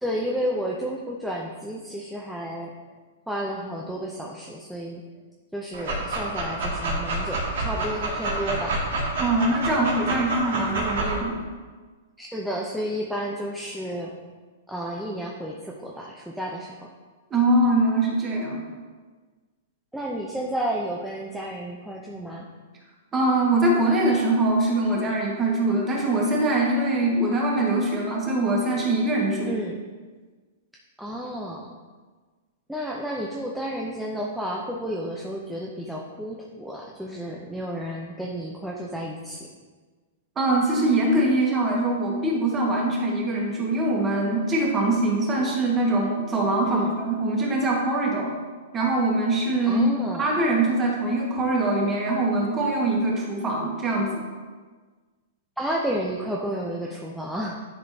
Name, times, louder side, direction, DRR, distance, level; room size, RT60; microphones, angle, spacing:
voice 1, 0.0-2.7 3.3-5.0 5.5-8.8 12.2-14.1 14.7-16.9 19.9-22.5 29.4-29.8 31.0-31.7 32.7-39.5 46.6-46.9 49.6-50.3 55.6-57.6, equal, ahead, -3 dB, 0.6 m, -31 dB
Dog, 5.7-11.2, right 2 dB, 70° right, 2.1 m, -28 dB
voice 2, 9.2-11.4 17.3-18.6 23.1-29.5 40.3-48.3 48.7-49.9 50.2-54.1, right 2 dB, 20° right, -2 dB, 1.5 m, -23 dB
10.5 x 4.9 x 2.8 m, 1.4 s
hypercardioid pair, 145°, 0 cm